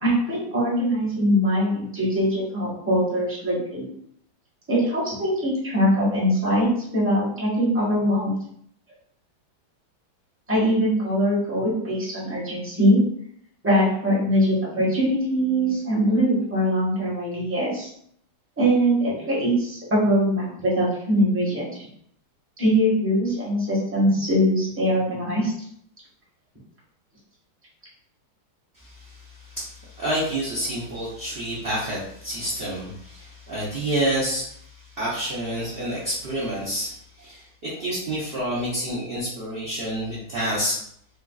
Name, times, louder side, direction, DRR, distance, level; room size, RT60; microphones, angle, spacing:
voice 1, 0.0-3.9 4.7-8.3 10.5-13.0 13.6-17.9 18.6-21.9 22.6-25.5, equal, 10° right, -7 dB, 0.9 m, -22 dB
voice 2, 28.8-34.7 35.0-40.8, right 1 dB, 50° right, -8 dB, 0.7 m, -28 dB
4.9 x 2.4 x 2.4 m, 0.68 s
omnidirectional pair, 2.2 m